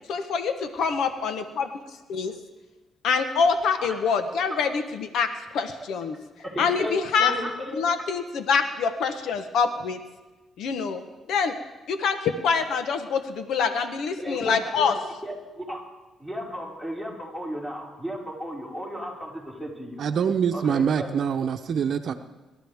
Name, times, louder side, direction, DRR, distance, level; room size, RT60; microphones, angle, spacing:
voice 1, 0.1-1.7 2.1-2.3 3.0-6.2 6.6-7.3 7.7-10.0 10.6-11.0 11.3-11.5 11.9-15.0, left 5 dB, 75° left, 8 dB, 1.1 m, -25 dB
voice 2, 6.4-7.8 14.2-14.9 15.2-15.8 16.2-20.0 20.5-21.1, equal, 10° left, -4 dB, 5.2 m, -34 dB
voice 3, 20.0-22.1, right 7 dB, 60° right, 7 dB, 0.9 m, -24 dB
27.5 x 12.0 x 3.6 m, 1.1 s
cardioid pair, 90°, 0 cm